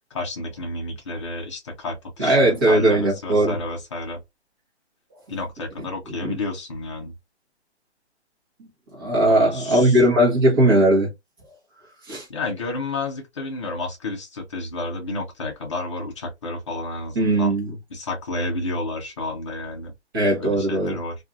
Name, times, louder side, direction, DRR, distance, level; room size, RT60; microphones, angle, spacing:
voice 1, 0.1-4.2 5.3-7.1 9.3-10.0 12.3-17.6 17.9-19.9 20.3-21.2, left 2 dB, 25° left, 0.7 m, -31 dB
voice 2, 2.2-3.6 6.1-6.4 8.6-8.7 8.9-11.1 12.1-12.3 17.1-17.8 20.1-21.0, right 1 dB, 20° right, 1.0 m, -19 dB
2.6 x 2.5 x 2.4 m
hypercardioid pair, 165°, 34 cm